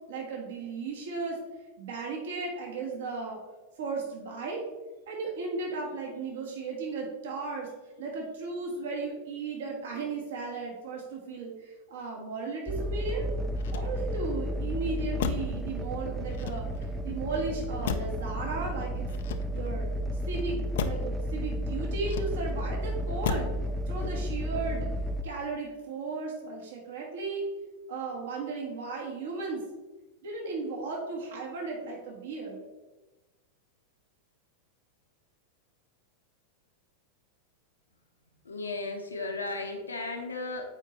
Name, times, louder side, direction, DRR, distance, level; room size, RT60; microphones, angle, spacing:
voice 1, 0.1-1.4 1.8-3.4 3.8-4.6 5.1-7.7 8.0-13.3 13.7-16.7 17.0-19.1 19.5-19.9 20.3-23.5 23.9-24.9 25.2-27.4 27.9-29.6 30.2-32.6, right 4 dB, 60° right, -1 dB, 1.4 m, -35 dB
sound 1, 12.7-25.2, equal, 10° right, 0.4 m, -32 dB
Motor vehicle (road), 13.5-14.3 15.2-15.6 16.3-17.0 17.8-18.3 19.1-19.8 20.7-21.1 22.0-22.6 23.2-23.6 24.0-24.4, left 7 dB, 55° left, 0.4 m, -35 dB
voice 2, 38.4-40.7, left 3 dB, 75° left, 3 dB, 0.8 m, -35 dB
7.6 x 4.9 x 3.0 m, 1.1 s
figure-of-eight pair, 90°, 0 cm